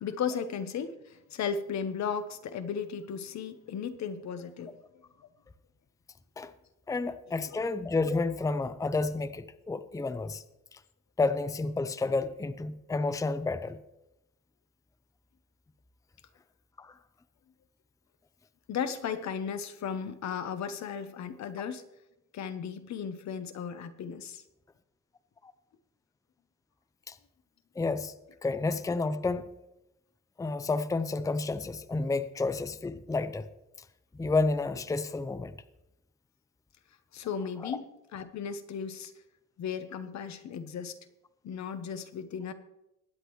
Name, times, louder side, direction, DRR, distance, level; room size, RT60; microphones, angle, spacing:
voice 1, 0.0-4.7 7.5-7.6 18.7-21.8 22.3-24.4 37.1-37.8 38.1-39.1 39.6-41.0 41.4-42.5, left 7 dB, 65° left, 10 dB, 1.0 m, -35 dB
voice 2, 6.9-10.4 10.7-10.8 11.2-13.8 16.8-16.9 25.4-25.5 27.1-27.2 27.8-28.1 28.4-29.4 30.4-33.4 34.1-35.5 37.6-37.7, left 3 dB, 10° left, 11 dB, 0.6 m, -30 dB
20.5 x 8.2 x 3.1 m, 0.91 s
cardioid pair, 90°, 30 cm